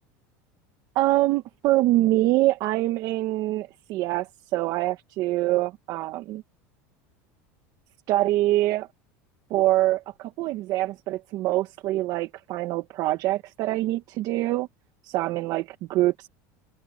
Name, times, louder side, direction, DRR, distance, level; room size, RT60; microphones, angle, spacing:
voice 1, 0.9-6.4 8.1-8.9 9.5-14.7 15.0-16.3, right 16 dB, 55° right, 1.3 m, -25 dB
open air
supercardioid pair, 130°, 8 cm